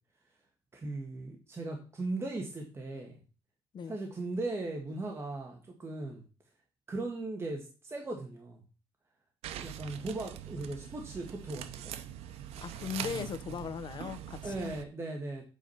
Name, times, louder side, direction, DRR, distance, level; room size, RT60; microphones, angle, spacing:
voice 1, 0.7-3.2 3.9-6.2 6.9-8.6 9.5-12.0 14.4-15.4, right 2 dB, 25° right, 1.7 m, -38 dB
sound 1, 9.4-14.8, right 11 dB, 90° right, 0.7 m, -43 dB
voice 2, 12.6-14.8, left 7 dB, 50° left, 0.9 m, -38 dB
8.4 x 5.0 x 5.7 m
cardioid pair, 110°, 10 cm